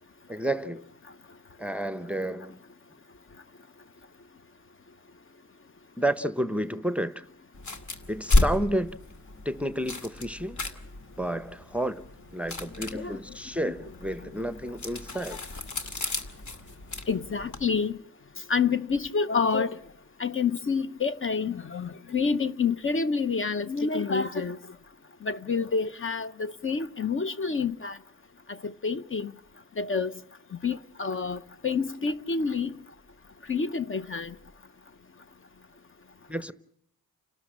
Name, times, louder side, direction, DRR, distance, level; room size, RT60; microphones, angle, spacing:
voice 1, 0.3-0.9 1.6-2.6 6.0-7.3 8.1-9.0 9.4-10.8 11.2-12.0 12.3-15.4 36.3-36.5, right 1 dB, 5° right, 0.8 m, -31 dB
sound 1, 7.5-17.7, left 2 dB, 55° left, 2.3 m, -32 dB
voice 2, 17.1-18.0 18.5-19.8 20.2-24.6 25.2-28.0 28.5-29.3 29.8-30.1 30.6-32.8 33.5-34.3, left 5 dB, 35° left, 0.9 m, -28 dB
30.0 x 12.5 x 8.6 m
cardioid pair, 65°, 35 cm